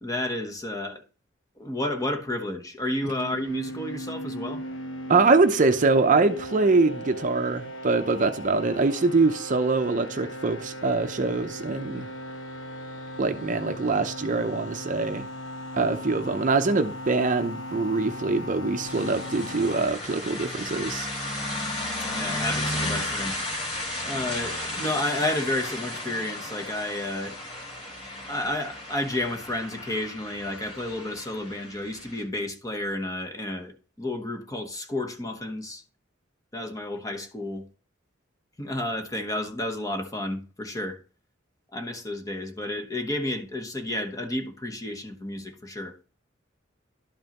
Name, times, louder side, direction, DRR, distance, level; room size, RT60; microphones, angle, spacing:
voice 1, 0.0-1.0 1.6-4.6 22.1-23.3 24.0-27.4 28.3-35.8 36.5-37.6 38.6-41.0 41.7-46.0, left 1 dB, 20° left, 1.0 m, -31 dB
sound 1, 3.1-19.9, equal, 80° left, 1.0 m, -38 dB
voice 2, 5.1-12.1 13.2-15.3 15.7-21.1, right 3 dB, 40° right, 0.6 m, -23 dB
sound 2, 18.8-32.2, left 1 dB, 35° left, 2.7 m, -34 dB
11.5 x 5.4 x 3.0 m
head